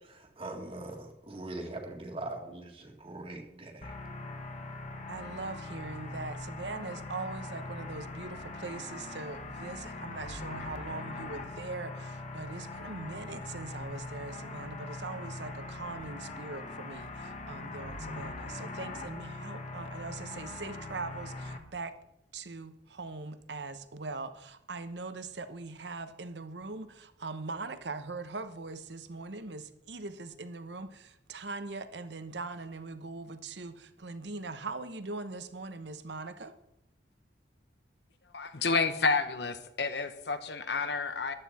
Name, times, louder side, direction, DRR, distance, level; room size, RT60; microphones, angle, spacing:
voice 1, 0.0-3.9, right 2 dB, 30° right, 1.9 m, -41 dB
sound 1, 3.8-21.6, left 2 dB, 40° left, 1.5 m, -41 dB
voice 2, 5.1-22.0 22.3-36.6, right 3 dB, 70° right, 1.0 m, -41 dB
voice 3, 38.3-41.3, left 4 dB, 65° left, 1.2 m, -30 dB
14.5 x 11.5 x 4.3 m
head